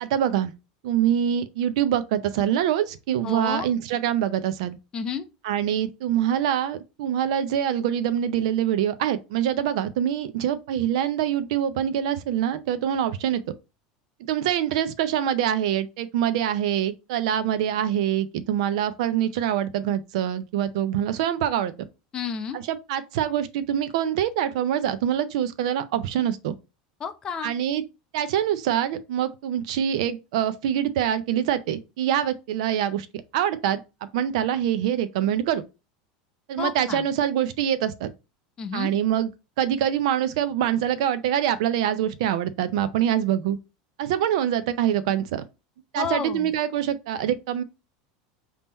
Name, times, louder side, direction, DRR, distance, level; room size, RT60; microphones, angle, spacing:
voice 1, 0.0-0.5 0.8-4.8 5.4-13.4 14.3-21.7 22.5-26.5 27.4-27.8 28.1-33.1 33.3-33.8 34.1-35.6 36.5-38.1 38.7-39.3 39.6-43.6 44.0-45.4 45.9-47.6, right 10 dB, 75° right, 0.4 m, -25 dB
voice 2, 3.2-3.7 4.9-5.3 22.1-22.6 27.0-27.5 36.6-37.0 38.6-38.9 46.0-46.5, left 6 dB, 20° left, 0.4 m, -31 dB
3.6 x 2.8 x 4.1 m
supercardioid pair, 145°, 4 cm